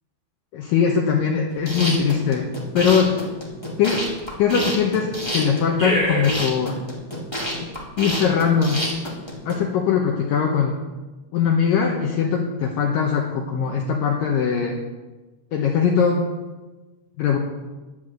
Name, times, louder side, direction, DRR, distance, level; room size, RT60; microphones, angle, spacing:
voice 1, 0.5-2.5 2.7-3.2 3.8-4.1 4.4-6.8 7.6-7.7 8.0-8.8 9.5-10.8 11.3-14.7 15.5-16.3 17.2-17.4, left 6 dB, 70° left, 0 dB, 2.3 m, -21 dB
sound 1, 1.5-9.5, equal, 15° left, 0.8 m, -27 dB
10.5 x 7.4 x 7.8 m, 1.2 s
omnidirectional pair, 4.7 m